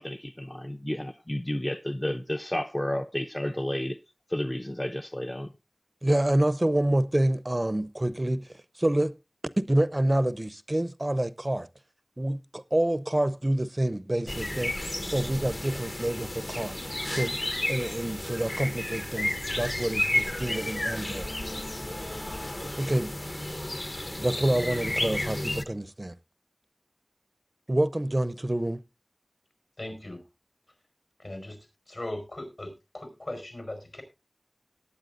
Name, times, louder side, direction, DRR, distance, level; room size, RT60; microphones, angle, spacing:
voice 1, 0.0-4.0 4.3-5.5, left 1 dB, 30° left, 0.7 m, -31 dB
voice 2, 6.0-8.5 8.8-9.1 9.6-11.7 12.2-14.8 15.1-16.8 17.1-17.4 17.7-21.3 22.8-23.1 24.2-26.1 27.7-28.8, right 1 dB, 40° right, 0.7 m, -27 dB
sound 1, 14.3-25.6, left 1 dB, 50° left, 1.0 m, -32 dB
voice 3, 29.8-30.2 31.2-31.6 31.9-34.0, left 1 dB, 80° left, 4.6 m, -38 dB
18.0 x 9.0 x 2.5 m
wide cardioid pair, 40°, 0 cm